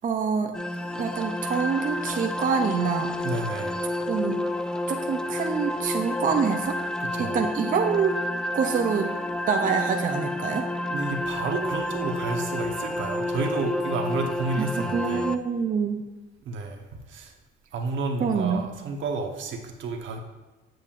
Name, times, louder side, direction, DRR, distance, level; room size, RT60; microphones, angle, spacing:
voice 1, 0.0-0.5 1.0-3.1 4.1-4.4 4.9-6.8 7.2-8.2 8.5-9.1 9.5-10.7 14.6-16.0 18.2-18.7, right 6 dB, 45° right, 4 dB, 0.6 m, -26 dB
sound 1, 0.5-15.4, left 1 dB, 5° left, 0.3 m, -30 dB
voice 2, 3.2-3.8 7.0-7.4 10.9-15.3 16.4-17.3 17.7-20.2, right 3 dB, 75° right, 4 dB, 1.0 m, -31 dB
7.6 x 6.8 x 2.5 m, 1.2 s
cardioid pair, 90°, 20 cm